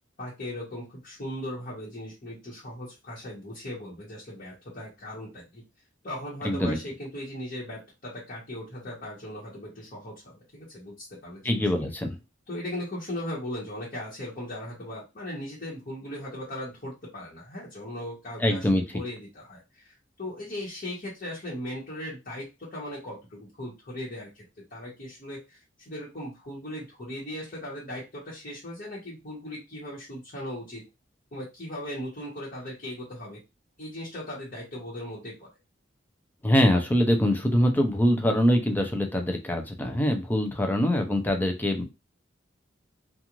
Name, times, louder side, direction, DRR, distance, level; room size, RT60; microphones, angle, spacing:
voice 1, 0.2-5.6 6.0-11.9 12.5-24.4 24.7-30.8 31.3-33.4 33.8-35.5, left 1 dB, 45° left, -7 dB, 1.1 m, -38 dB
voice 2, 6.4-6.8 11.4-12.2 18.4-18.8 36.4-41.8, equal, 10° left, 4 dB, 0.5 m, -23 dB
2.5 x 2.4 x 3.0 m, 0.26 s
head